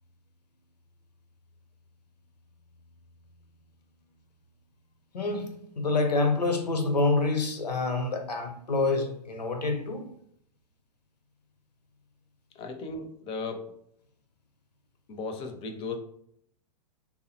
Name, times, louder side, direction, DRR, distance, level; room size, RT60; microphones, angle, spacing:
voice 1, 5.1-10.1, left 3 dB, 85° left, 5 dB, 0.6 m, -27 dB
voice 2, 12.5-13.7 15.1-16.0, left 3 dB, 25° left, 6 dB, 0.4 m, -36 dB
3.4 x 2.0 x 2.9 m, 0.68 s
hypercardioid pair, 105°, 21 cm